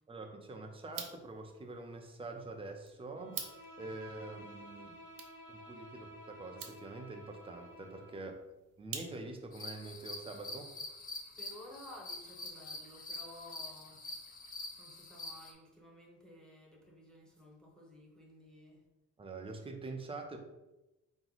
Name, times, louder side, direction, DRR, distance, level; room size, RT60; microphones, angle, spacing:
voice 1, 0.1-4.9 5.5-8.4 8.8-10.7 19.2-20.4, right 2 dB, 15° right, 3 dB, 0.5 m, -45 dB
sound 1, 0.8-9.5, right 7 dB, 75° right, 0.8 m, -50 dB
Bowed string instrument, 3.1-8.3, equal, 60° left, 1.2 m, -53 dB
sound 2, 9.5-15.5, left 2 dB, 25° left, 0.6 m, -46 dB
voice 2, 11.3-14.1 14.8-18.8, left 1 dB, ahead, -3 dB, 0.9 m, -54 dB
4.4 x 3.0 x 4.0 m, 0.97 s
cardioid pair, 175°, 33 cm